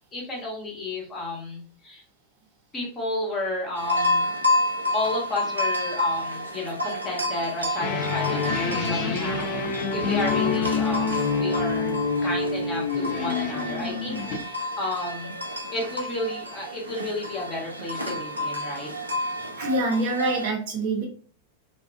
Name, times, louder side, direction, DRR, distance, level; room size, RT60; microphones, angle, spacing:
voice 1, 0.1-2.0 2.7-4.3 4.9-11.9 12.2-15.4 15.7-18.9, left 2 dB, 20° left, -2 dB, 1.0 m, -32 dB
sound 1, 3.7-20.5, left 1 dB, 85° right, 0.4 m, -30 dB
sound 2, 7.8-14.4, left 4 dB, 45° left, 0.6 m, -26 dB
voice 2, 19.6-21.1, right 2 dB, 50° right, 0 dB, 0.8 m, -25 dB
2.4 x 2.3 x 2.2 m, 0.43 s
figure-of-eight pair, 90°, 0 cm